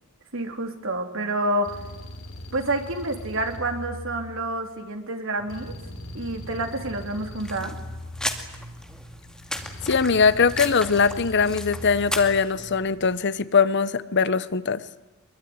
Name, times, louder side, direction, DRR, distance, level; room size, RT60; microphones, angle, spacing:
voice 1, 0.3-1.8 2.5-5.8 6.1-7.8, right 1 dB, 65° right, 4 dB, 3.3 m, -28 dB
sound 1, 1.6-4.8 5.5-8.8 9.6-12.4, left 1 dB, 80° left, 4.3 m, -40 dB
sound 2, 5.4-13.1, equal, 85° right, 5.6 m, -46 dB
sound 3, 7.4-12.5, left 1 dB, 5° left, 2.3 m, -35 dB
voice 2, 9.8-14.8, left 5 dB, 55° left, 15 dB, 0.9 m, -21 dB
23.5 x 23.0 x 9.6 m, 1.0 s
head